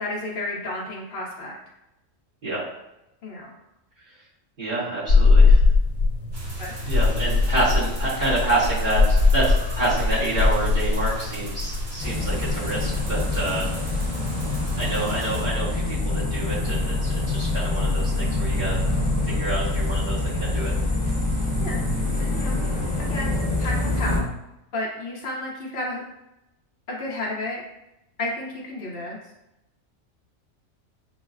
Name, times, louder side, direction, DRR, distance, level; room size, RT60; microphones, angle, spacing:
voice 1, 0.0-1.5 3.2-3.5 6.6-6.8 21.6-21.9 22.2-22.6 23.1-23.3 23.6-24.3 24.7-26.0 26.9-27.6 28.2-29.2, left 2 dB, 50° left, -4 dB, 0.9 m, -31 dB
voice 2, 4.6-5.6 6.9-13.7 14.8-18.8 19.2-20.7, right 2 dB, 45° right, -10 dB, 1.3 m, -28 dB
sound 1, 5.1-21.2, left 3 dB, 85° left, 1.1 m, -24 dB
sound 2, 6.3-15.4, right 2 dB, 75° right, 1.5 m, -39 dB
sound 3, 12.0-24.2, left 2 dB, 10° left, 1.0 m, -25 dB
6.2 x 2.1 x 2.4 m, 0.89 s
omnidirectional pair, 1.4 m